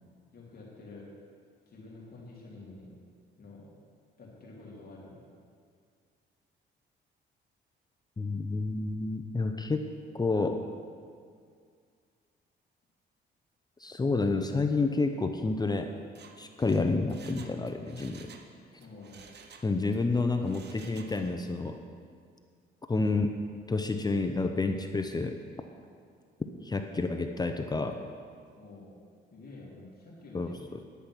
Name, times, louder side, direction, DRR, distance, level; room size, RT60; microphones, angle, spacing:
voice 1, 0.3-1.1 1.7-2.9 3.4-3.7 4.2-5.2 18.8-19.2 28.6-28.9 29.3-30.5, left 2 dB, 50° left, -4 dB, 2.9 m, -48 dB
voice 2, 8.2-9.9 10.1-10.6 13.8-15.9 16.4-18.3 19.6-21.8 22.9-23.4 23.7-25.4 26.6-28.0 30.3-30.6, left 3 dB, 20° left, 6 dB, 0.7 m, -29 dB
Mechanisms, 16.0-18.5 18.8-20.0 20.4-21.5 21.8-21.9, right 5 dB, 55° right, 1.1 m, -53 dB
10.0 x 9.8 x 6.2 m, 2.1 s
cardioid pair, 90°, 20 cm